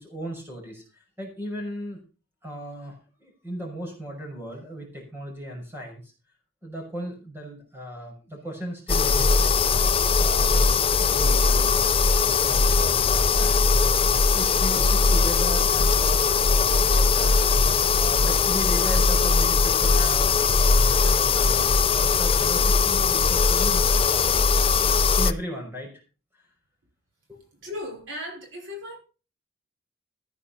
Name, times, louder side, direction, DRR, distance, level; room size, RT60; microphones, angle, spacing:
voice 1, 0.0-2.0 2.4-6.1 6.6-13.8 14.3-16.2 16.5-26.0 26.3-26.5 27.3-27.4, equal, 10° right, 5.8 m, -37 dB
sound 1, 8.9-25.3, left 4 dB, 25° left, 0.6 m, -20 dB
voice 2, 27.6-29.0, left 1 dB, 70° right, 5.5 m, -36 dB
15.0 x 9.9 x 4.3 m
head